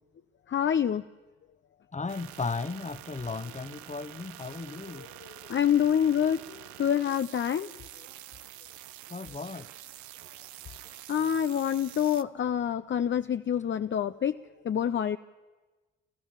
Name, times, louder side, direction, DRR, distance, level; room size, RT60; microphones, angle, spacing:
voice 1, 0.5-1.0 4.9-7.7 11.1-14.4 14.6-15.2, left 9 dB, 40° left, 0.6 m, -27 dB
voice 2, 1.9-5.1 9.1-9.7, left 4 dB, 25° left, 1.0 m, -35 dB
sound 1, 2.1-12.2, right 14 dB, 80° right, 0.6 m, -47 dB
29.0 x 14.0 x 7.3 m
hypercardioid pair, 40°, 29 cm